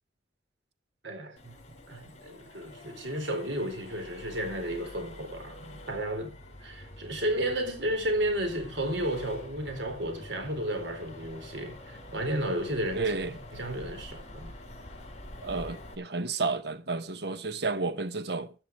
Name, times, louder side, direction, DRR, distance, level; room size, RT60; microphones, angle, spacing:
voice 1, 1.0-1.6 1.9-6.3 6.6-13.1 13.5-14.5, right 1 dB, 75° right, 4.2 m, -33 dB
Accelerating revving vroom, 1.4-15.9, left 1 dB, 35° left, 4.9 m, -47 dB
voice 2, 12.9-13.4 15.4-18.5, right 3 dB, 60° right, 1.1 m, -31 dB
13.5 x 10.5 x 4.7 m
head